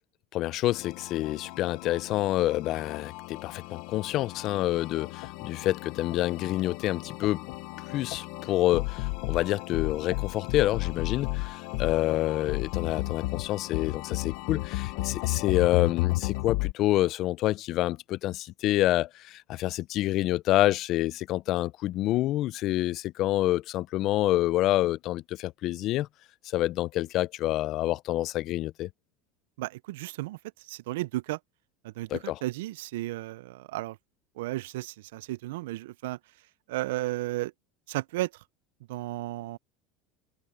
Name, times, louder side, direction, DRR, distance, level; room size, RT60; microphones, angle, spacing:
voice 1, 0.3-7.4 7.9-26.1 26.5-28.9 32.1-32.4, left 15 dB, 35° left, 0.4 m, -27 dB
sound 1, 0.7-16.7, left 20 dB, 50° left, 0.8 m, -34 dB
voice 2, 29.6-31.4 31.8-34.0 34.4-36.2 36.7-37.5 37.9-38.4 38.9-39.6, right 18 dB, 90° right, 0.3 m, -34 dB
open air
cardioid pair, 180°, 0 cm